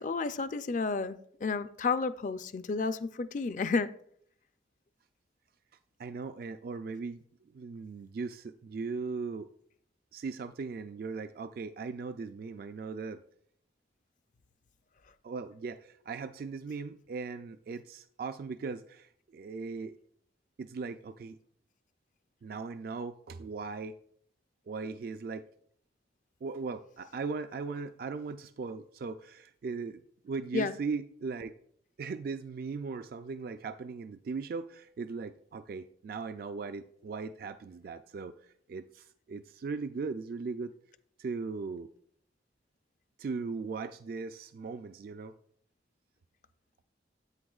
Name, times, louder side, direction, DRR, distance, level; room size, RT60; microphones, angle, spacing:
voice 1, 0.0-3.9 30.5-30.7, left 4 dB, 45° left, 0.4 m, -31 dB
voice 2, 6.0-9.5 10.1-13.2 15.2-20.0 20.6-21.4 22.4-24.0 24.7-25.5 26.4-31.5 32.0-40.7 41.2-41.9 43.2-45.4, right 4 dB, 50° right, 0.3 m, -38 dB
9.7 x 8.3 x 2.4 m
head